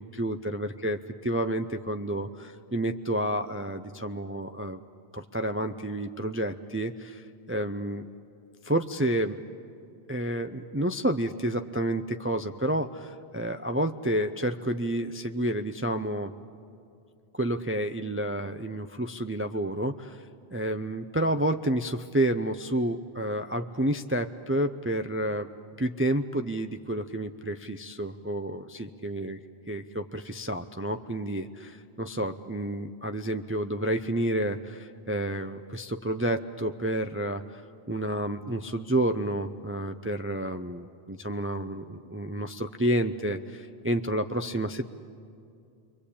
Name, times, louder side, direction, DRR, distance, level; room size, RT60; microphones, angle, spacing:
voice 1, 0.2-4.8 5.1-8.1 8.6-9.4 10.1-16.3 17.3-20.2 20.5-25.5 25.8-29.4 29.7-37.6 37.9-44.9, right 1 dB, 15° right, 6 dB, 0.5 m, -30 dB
28.5 x 23.0 x 8.6 m, 2.5 s
omnidirectional pair, 1.1 m